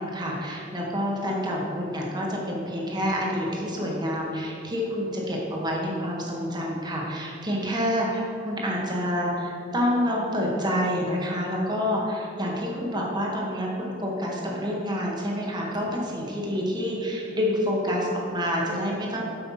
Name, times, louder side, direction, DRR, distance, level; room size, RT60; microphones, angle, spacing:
voice 1, 0.0-19.2, equal, 20° right, -3 dB, 1.6 m, -28 dB
8.2 x 5.7 x 5.8 m, 2.8 s
head